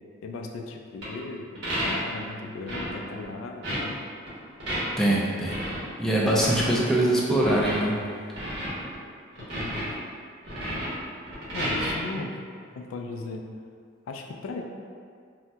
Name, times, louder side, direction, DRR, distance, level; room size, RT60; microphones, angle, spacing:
voice 1, 0.2-4.0 9.4-9.9 11.5-12.3 12.8-13.4 14.1-14.6, left 3 dB, 90° left, 3 dB, 0.3 m, -37 dB
sound 1, 1.0-1.1 1.6-2.2 2.7-2.9 3.2-3.3 3.6-3.8 4.3-5.1 5.5-5.8 6.4-6.8 7.4-8.1 8.3-8.9 9.3-9.9 10.4-11.9, equal, 60° right, 1.1 m, -31 dB
voice 2, 5.0-5.6 6.0-7.9 12.1-12.2, right 1 dB, ahead, -5 dB, 0.3 m, -23 dB
2.7 x 2.1 x 3.3 m, 2.1 s
head